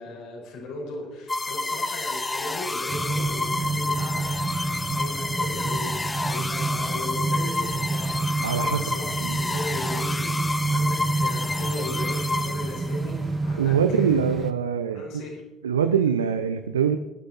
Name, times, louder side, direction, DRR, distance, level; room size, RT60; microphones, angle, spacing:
voice 1, 0.0-14.2 14.9-15.4, left 2 dB, 60° left, 0 dB, 4.7 m, -37 dB
sound 1, 1.3-13.1, left 2 dB, 20° left, 1.1 m, -29 dB
sound 2, 2.9-14.5, right 3 dB, 30° right, 1.0 m, -29 dB
voice 2, 8.4-8.8 9.2-9.4 13.6-15.1 15.6-17.0, right 8 dB, 80° right, 9 dB, 0.6 m, -23 dB
20.0 x 11.5 x 4.1 m, 1.0 s
figure-of-eight pair, 55°, 0 cm